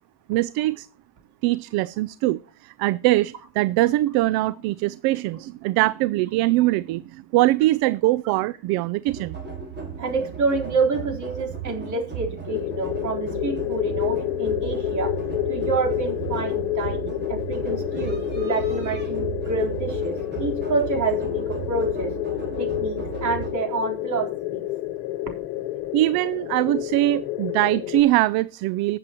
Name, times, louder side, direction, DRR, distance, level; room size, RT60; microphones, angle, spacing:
voice 1, 0.3-0.9 1.4-9.4 25.9-29.0, right 17 dB, 55° right, 19 dB, 0.5 m, -22 dB
sound 1, 9.1-23.5, right 7 dB, 25° right, 4.9 m, -35 dB
voice 2, 10.0-15.1 15.5-22.1 22.6-24.6, right 4 dB, 40° right, 1 dB, 3.8 m, -28 dB
sound 2, 12.5-28.0, left 15 dB, 75° left, 1.2 m, -29 dB
20.0 x 7.7 x 2.9 m, 0.36 s
supercardioid pair, 115°, 44 cm